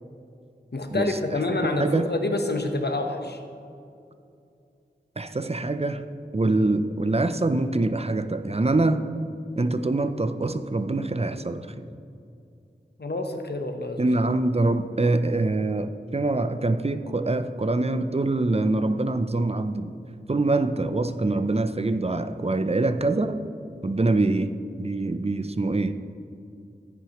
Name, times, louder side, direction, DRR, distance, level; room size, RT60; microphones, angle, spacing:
voice 1, 0.7-3.4 13.0-14.1, left 2 dB, 65° left, 5 dB, 1.0 m, -27 dB
voice 2, 5.2-6.0 6.3-9.1 9.6-11.7 14.0-19.9 20.3-23.4 23.8-24.5 24.8-26.0, right 2 dB, 35° right, 9 dB, 0.5 m, -24 dB
13.5 x 9.6 x 3.0 m, 2.5 s
wide cardioid pair, 45°, 18 cm